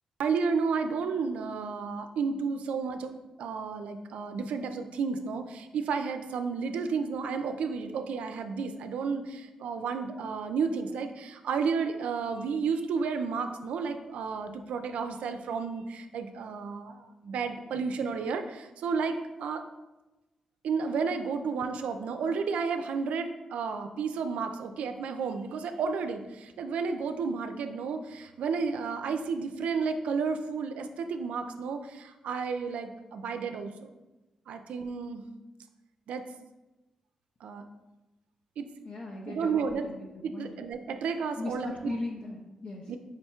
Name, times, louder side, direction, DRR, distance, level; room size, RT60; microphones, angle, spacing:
voice 1, 0.2-3.1 3.4-19.6 20.6-34.0 34.5-35.3 36.1-36.2 37.4-37.6 38.6-38.7 39.2-39.8 40.2-42.0 42.9-43.0, right 5 dB, 75° right, 7 dB, 0.3 m, -32 dB
voice 2, 38.8-40.0 40.3-40.5 41.4-43.0, left 2 dB, 60° left, -2 dB, 0.6 m, -38 dB
4.9 x 2.2 x 4.3 m, 1.1 s
supercardioid pair, 45°, 2 cm